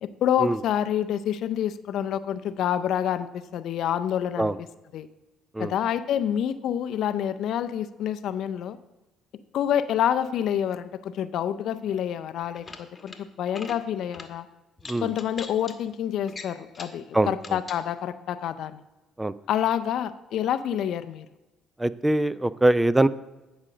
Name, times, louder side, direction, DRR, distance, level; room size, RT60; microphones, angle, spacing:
voice 1, 0.0-4.5 4.9-5.1 5.6-8.8 9.5-14.5 15.0-18.8 19.5-21.3, left 10 dB, 65° left, 12 dB, 0.4 m, -27 dB
sound 1, 12.5-13.2 13.5-13.8 14.1-14.3 14.8-15.7 16.3-17.0 17.4-17.8, left 4 dB, 30° left, 1.1 m, -41 dB
voice 2, 17.1-17.6 19.2-19.3 21.8-23.1, right 1 dB, 15° right, 16 dB, 0.4 m, -23 dB
9.8 x 5.1 x 5.0 m, 1.1 s
supercardioid pair, 60°, 0 cm